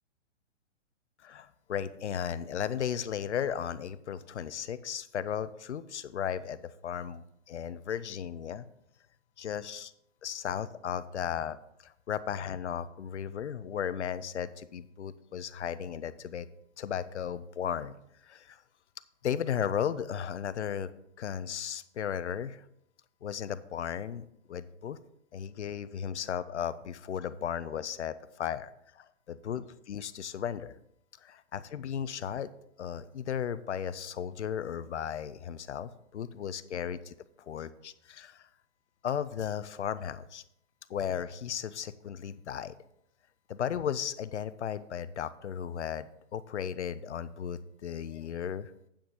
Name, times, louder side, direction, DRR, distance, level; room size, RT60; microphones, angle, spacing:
voice 1, 1.2-8.7 9.4-9.9 10.2-11.6 11.8-16.5 16.8-17.9 18.2-18.6 19.2-20.9 21.2-22.6 23.2-25.0 25.3-30.8 31.2-32.5 32.8-37.1 37.5-38.4 39.0-40.4 40.9-42.8 43.5-48.7, left 8 dB, 70° left, 15 dB, 0.7 m, -35 dB
8.6 x 7.9 x 3.7 m, 0.75 s
figure-of-eight pair, 120°, 36 cm